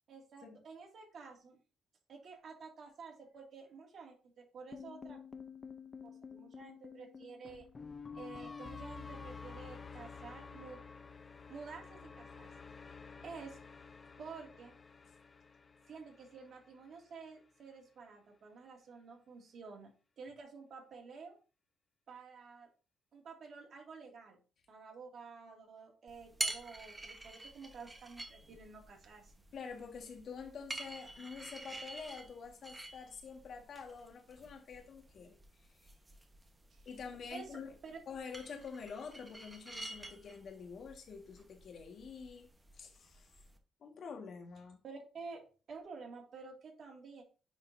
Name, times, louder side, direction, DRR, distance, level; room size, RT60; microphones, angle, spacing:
voice 1, 0.1-1.6 2.1-5.2 6.0-7.7 8.1-10.8 11.5-12.5 13.2-13.6 14.2-14.8 15.9-19.9 20.2-21.4 22.1-22.7 23.1-24.4 24.7-29.3 36.7-36.9 37.3-38.0 44.8-47.2, right 5 dB, 55° right, 2.2 m, -51 dB
sound 1, 4.7-16.9, left 5 dB, 35° left, 0.6 m, -50 dB
sound 2, 26.1-43.6, right 2 dB, 15° right, 1.2 m, -48 dB
voice 2, 29.5-35.4 36.8-37.7 38.1-42.5 42.7-43.3 43.8-44.8, left 5 dB, 60° left, 1.6 m, -47 dB
9.8 x 4.0 x 2.7 m
cardioid pair, 90°, 0 cm